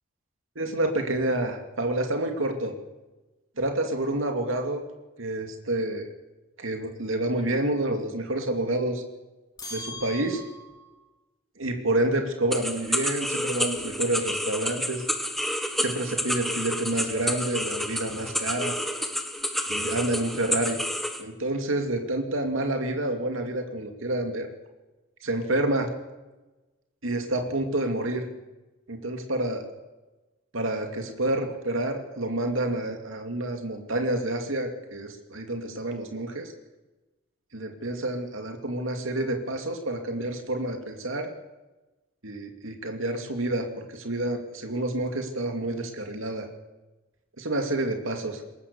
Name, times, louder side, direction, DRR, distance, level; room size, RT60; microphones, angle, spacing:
voice 1, 0.6-2.7 3.6-4.8 5.2-6.1 6.6-9.0 9.7-10.4 11.6-15.0 15.8-18.8 19.7-20.8 21.2-24.5 25.2-25.9 27.0-28.2 28.9-29.7 30.5-36.5 37.5-41.3 42.2-46.5 47.4-48.4, right 1 dB, 90° right, 4 dB, 2.5 m, -28 dB
sound 1, 9.6-10.9, left 2 dB, 20° left, 2.9 m, -40 dB
sound 2, 12.5-21.2, equal, ahead, 1.6 m, -30 dB
22.0 x 20.5 x 7.0 m, 1.1 s
head